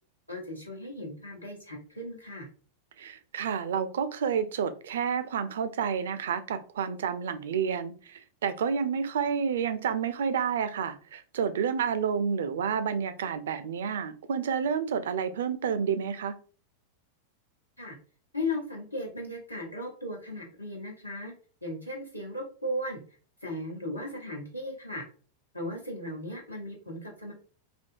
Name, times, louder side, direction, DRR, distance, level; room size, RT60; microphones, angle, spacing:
voice 1, 0.3-2.5 17.8-18.0 18.3-21.3 21.6-23.0 23.4-25.0 25.5-27.3, left 1 dB, 85° left, -1 dB, 0.9 m, -36 dB
voice 2, 3.0-16.4, right 7 dB, 60° right, 11 dB, 0.4 m, -30 dB
3.4 x 2.6 x 2.6 m, 0.39 s
figure-of-eight pair, 90°, 0 cm